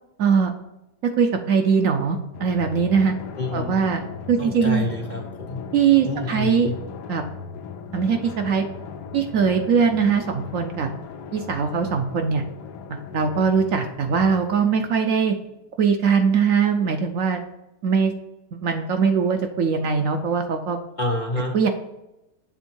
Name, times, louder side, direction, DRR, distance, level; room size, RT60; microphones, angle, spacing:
voice 1, 0.2-0.5 1.0-3.1 3.5-4.0 4.3-4.9 5.7-6.7 7.1-7.2 7.9-8.6 9.1-10.9 11.3-12.4 12.9-15.3 15.8-17.4 17.8-18.1 18.5-20.8 21.5-21.7, right 6 dB, 65° right, 5 dB, 0.9 m, -21 dB
Drum, 2.3-15.4, left 6 dB, 90° left, 1.2 m, -38 dB
voice 2, 3.4-3.9 4.4-5.6 6.0-6.8 21.0-21.6, left 2 dB, 40° left, 1 dB, 0.7 m, -28 dB
7.0 x 3.6 x 4.4 m, 0.93 s
omnidirectional pair, 1.7 m